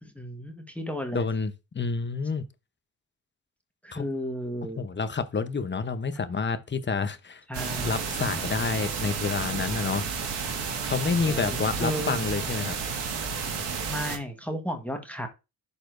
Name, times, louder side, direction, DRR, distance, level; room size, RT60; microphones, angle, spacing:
voice 1, 0.0-1.2 3.8-4.8 7.5-8.0 11.3-12.2 13.9-15.3, equal, 5° left, 1.3 m, -33 dB
voice 2, 1.1-2.5 3.9-4.0 4.8-7.4 7.8-10.0 10.8-12.8, left 5 dB, 25° left, 0.9 m, -29 dB
sound 1, 7.5-14.2, right 5 dB, 70° right, 1.8 m, -31 dB
11.5 x 4.2 x 2.6 m
cardioid pair, 80°, 44 cm